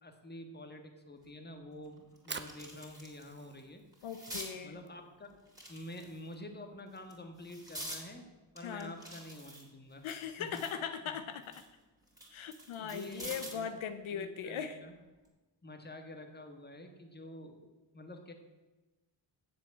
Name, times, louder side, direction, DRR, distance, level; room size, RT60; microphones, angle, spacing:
voice 1, 0.0-3.8 4.6-5.4 5.7-8.3 8.5-10.1 10.4-10.7 11.0-11.2 12.8-13.7 14.1-15.0 15.6-18.3, left 1 dB, 20° left, 5 dB, 1.6 m, -48 dB
sound 1, 1.2-1.3 1.8-3.2 3.6-4.5 5.5-6.3 6.9-8.0 8.6-10.8 11.2-13.7 15.0-15.3, right 1 dB, 5° right, 3.4 m, -47 dB
Fire, 2.0-8.2, right 5 dB, 25° right, 0.8 m, -51 dB
voice 2, 4.0-4.8 8.6-8.9 10.0-11.6 12.3-14.8, left 7 dB, 85° left, 10 dB, 0.8 m, -39 dB
7.6 x 7.5 x 8.2 m, 1.2 s
cardioid pair, 90°, 47 cm